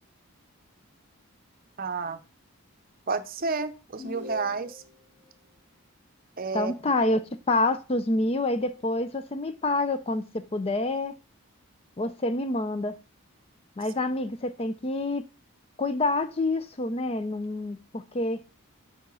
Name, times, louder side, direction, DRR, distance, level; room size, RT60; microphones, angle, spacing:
voice 1, 1.8-2.2 3.1-4.8 6.4-6.7, right 4 dB, 40° right, 0.6 m, -30 dB
sound 1, 4.0-5.0, left 4 dB, 60° left, 3.8 m, -41 dB
voice 2, 6.5-11.1 12.0-13.0 13.8-15.2 15.8-18.4, left 2 dB, 25° left, 0.4 m, -27 dB
6.3 x 4.8 x 5.5 m
head